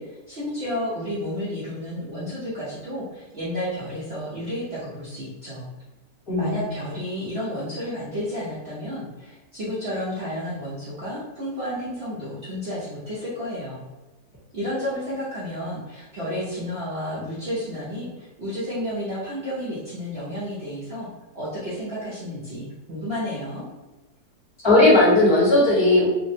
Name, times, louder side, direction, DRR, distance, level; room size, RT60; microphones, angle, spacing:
voice 1, 0.0-5.7 6.4-13.8 14.5-21.1 21.3-23.6, equal, 55° right, -9 dB, 0.8 m, -31 dB
voice 2, 6.3-6.7 24.6-26.1, left 2 dB, 20° left, -9 dB, 1.0 m, -17 dB
3.3 x 2.0 x 2.7 m, 1.1 s
omnidirectional pair, 1.8 m